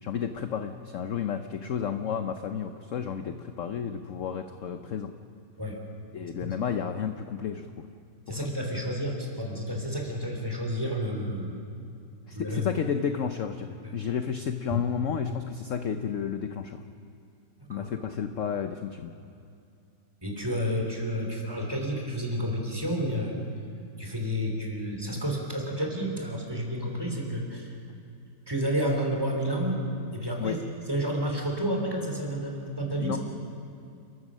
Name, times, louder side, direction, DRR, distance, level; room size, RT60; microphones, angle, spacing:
voice 1, 0.0-5.1 6.1-7.9 8.3-8.4 12.3-16.8 17.7-19.1 30.4-30.6 33.0-33.2, left 7 dB, 55° left, 7 dB, 0.9 m, -32 dB
voice 2, 8.3-11.6 12.4-12.7 14.7-14.8 17.7-17.9 20.2-23.4 24.0-27.8 28.5-29.8 30.1-30.6 30.9-33.2, equal, 15° right, 0 dB, 3.5 m, -30 dB
29.5 x 14.5 x 6.3 m, 2.5 s
omnidirectional pair, 1.9 m